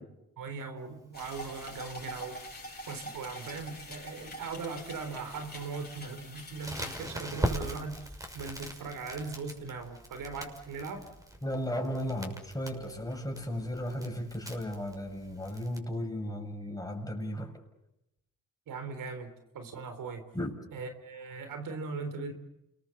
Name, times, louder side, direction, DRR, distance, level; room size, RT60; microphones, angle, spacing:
voice 1, 0.4-2.4 2.9-11.1 18.7-20.3 20.7-22.3, right 4 dB, 80° right, 8 dB, 3.8 m, -39 dB
sound 1, 1.1-7.0, equal, 30° left, 7.2 m, -45 dB
Crackle, 6.6-15.8, right 1 dB, 10° right, 6.3 m, -40 dB
voice 2, 11.4-17.5 20.3-20.5, equal, 10° left, 1 dB, 7.0 m, -35 dB
29.0 x 21.5 x 7.2 m, 0.87 s
cardioid pair, 60°, 32 cm